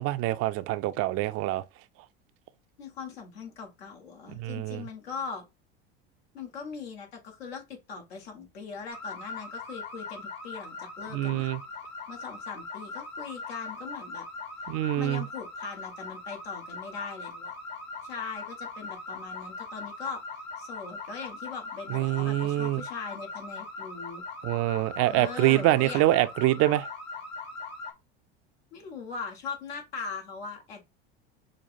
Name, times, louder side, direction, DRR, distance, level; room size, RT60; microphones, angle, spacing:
voice 1, 0.0-1.6 4.4-4.8 11.1-11.6 14.7-15.2 21.9-22.8 24.4-26.9, right 16 dB, 50° right, 0.5 m, -25 dB
voice 2, 2.8-5.4 6.3-11.5 12.1-14.3 15.0-17.5 18.0-20.2 20.6-24.2 25.1-26.0 28.7-30.8, left 5 dB, 80° left, 1.8 m, -40 dB
sound 1, 8.9-27.9, left 3 dB, 55° left, 1.6 m, -40 dB
6.4 x 2.4 x 2.6 m
hypercardioid pair, 85°, 31 cm